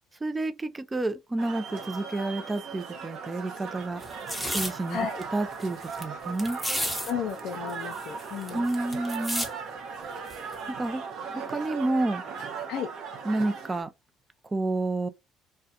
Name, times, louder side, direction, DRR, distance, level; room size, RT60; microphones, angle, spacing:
voice 1, 0.2-4.0 4.5-6.8 8.5-9.5 10.7-11.0 11.3-12.2 13.2-13.9 14.5-15.1, right 2 dB, 20° right, 0.4 m, -30 dB
sound 1, 1.4-13.8, right 5 dB, 65° right, 0.6 m, -38 dB
sound 2, 4.0-4.7 5.2-5.3 5.5-6.0 6.4-7.1 7.4-7.5 7.7-9.5 10.3-10.5, equal, ahead, 0.8 m, -32 dB
voice 2, 7.0-8.6 12.7-12.9, left 7 dB, 70° left, 0.4 m, -33 dB
2.4 x 2.1 x 2.7 m
supercardioid pair, 75°, 0 cm